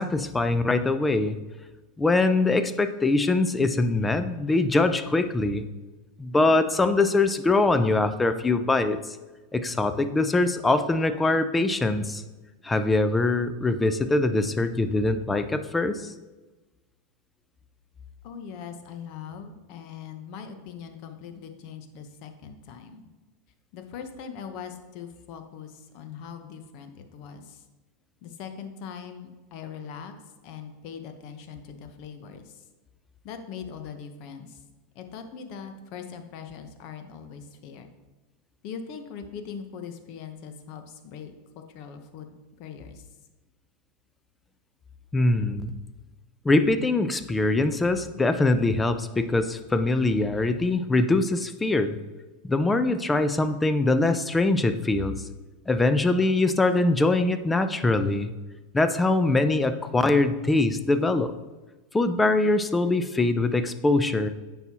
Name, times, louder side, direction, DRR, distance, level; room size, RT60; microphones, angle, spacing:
voice 1, 0.0-1.3 2.0-5.6 6.2-9.2 9.5-12.2 12.6-16.0 45.1-45.7 46.4-52.0 52.4-55.2 55.7-58.3 58.7-61.3 61.9-64.3, left 2 dB, 10° left, 10 dB, 0.5 m, -23 dB
voice 2, 18.2-23.0 23.7-27.6 28.2-30.1 30.4-32.6 33.2-34.6 34.9-37.9 38.6-43.1, left 7 dB, 55° left, 7 dB, 0.9 m, -41 dB
9.1 x 5.5 x 2.9 m, 1.2 s
supercardioid pair, 120°, 0 cm